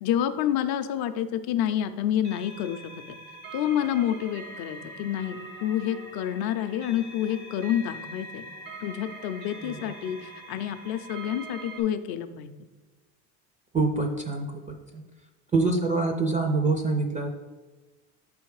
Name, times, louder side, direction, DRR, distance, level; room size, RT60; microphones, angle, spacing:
voice 1, 0.0-2.8 3.5-8.5 8.8-12.5, left 10 dB, 50° left, 9 dB, 0.5 m, -28 dB
sound 1, 2.2-11.8, right 2 dB, 85° right, 1.4 m, -43 dB
voice 2, 9.6-10.2 13.7-14.6 14.9-15.0 15.5-17.3, right 3 dB, 20° right, 4 dB, 0.4 m, -26 dB
6.3 x 3.5 x 4.7 m, 1.3 s
supercardioid pair, 105°, 46 cm